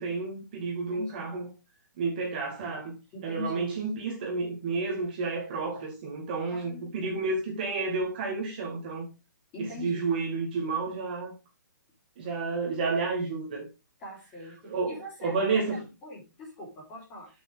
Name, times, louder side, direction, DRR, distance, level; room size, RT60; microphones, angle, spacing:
voice 1, 0.0-1.5 2.0-2.9 3.2-9.1 9.6-11.3 12.2-13.7 14.6-15.8, right 4 dB, 30° right, 2.1 m, -31 dB
voice 2, 0.9-1.4 3.1-3.7 6.5-7.2 9.5-10.1 14.0-14.6 14.9-17.3, left 1 dB, 15° left, 3.3 m, -41 dB
9.0 x 6.5 x 3.8 m
hypercardioid pair, 175°, 10 cm